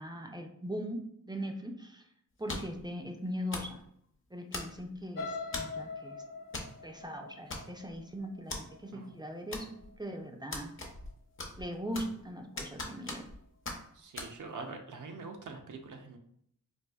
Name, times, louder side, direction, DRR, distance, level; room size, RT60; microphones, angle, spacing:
voice 1, 0.0-2.0 2.4-3.8 4.3-6.2 6.8-10.7 11.6-13.3, equal, 15° right, 3 dB, 0.4 m, -40 dB
sound 1, 2.5-2.8 3.5-3.8 4.5-5.0 5.5-5.8 6.5-6.7 7.0-7.1 7.5-8.0 8.5-8.6 9.5-10.0 10.5-11.1 11.4-12.2 12.6-13.4 13.6-13.8 14.2-14.3, left 2 dB, 40° left, 0.7 m, -39 dB
sound 2, 5.2-9.1 9.6-9.9 10.2-10.3, left 4 dB, 70° left, 0.7 m, -42 dB
voice 2, 13.9-16.2, right 4 dB, 65° right, 4 dB, 0.6 m, -44 dB
4.0 x 2.4 x 2.3 m, 0.69 s
wide cardioid pair, 100°, 33 cm